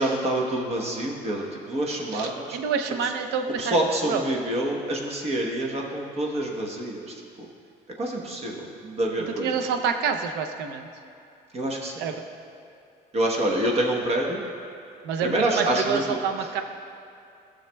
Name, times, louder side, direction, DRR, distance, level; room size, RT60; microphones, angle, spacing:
voice 1, 0.0-2.6 3.6-7.5 8.0-9.7 11.5-12.0 13.1-14.4 15.2-16.0, right 1 dB, 40° right, 0 dB, 1.0 m, -27 dB
voice 2, 2.1-4.2 9.3-10.9 12.0-12.2 15.0-16.6, right 6 dB, 90° right, 6 dB, 0.6 m, -28 dB
14.0 x 6.4 x 2.2 m, 2.6 s
cardioid pair, 110°, 17 cm